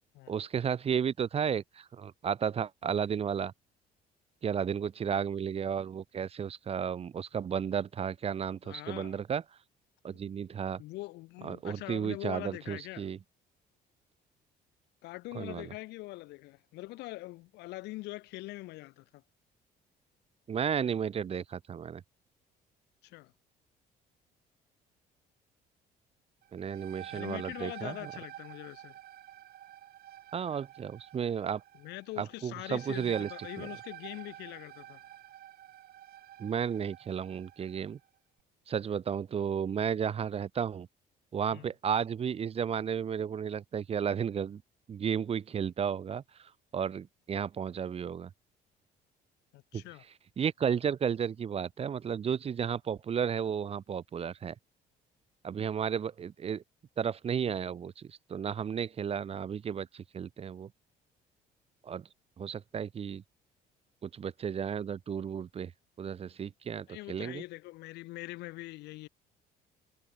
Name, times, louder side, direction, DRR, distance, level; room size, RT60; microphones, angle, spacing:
voice 1, 0.3-3.5 4.4-9.4 10.0-10.8 11.4-13.2 15.3-15.7 20.5-22.0 26.5-28.1 30.3-31.6 32.2-33.3 33.6-33.7 36.4-38.0 38.7-40.9 41.3-44.6 44.9-48.3 49.7-49.8 50.4-54.5 55.4-56.6 57.0-60.7 61.8-62.1 62.4-63.2 64.0-65.7 66.0-67.4, right 7 dB, 35° right, 0.8 m, -33 dB
voice 2, 8.6-9.2 10.8-13.1 15.0-19.2 23.0-23.3 27.1-29.0 31.8-35.0 41.5-41.6 49.5-50.0 66.9-69.1, left 19 dB, 85° left, 1.8 m, -43 dB
sound 1, 26.4-37.9, right 13 dB, 65° right, 2.3 m, -49 dB
cardioid pair, 110°, 17 cm